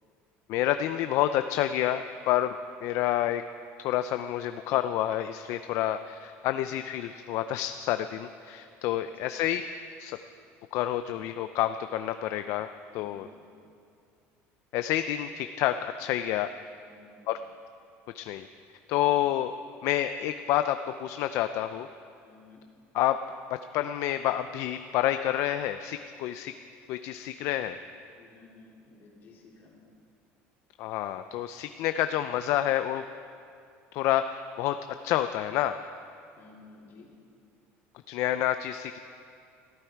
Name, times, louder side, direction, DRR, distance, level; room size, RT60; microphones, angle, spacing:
voice 1, 0.5-2.6 2.8-3.4 3.8-9.6 10.0-10.2 10.7-12.7 12.9-13.3 14.7-16.5 17.3-17.4 18.1-18.5 18.9-19.5 19.8-21.9 22.9-23.2 23.7-26.5 26.9-27.8 30.8-33.0 33.9-34.8 35.0-35.8 38.1-39.0, left 12 dB, 65° left, 9 dB, 0.5 m, -28 dB
voice 2, 12.9-13.5 16.8-17.4 22.2-22.6 28.1-29.8 36.4-37.1, left 3 dB, 45° left, -3 dB, 3.8 m, -54 dB
20.5 x 14.5 x 4.6 m, 2.4 s
cardioid pair, 135°, 5 cm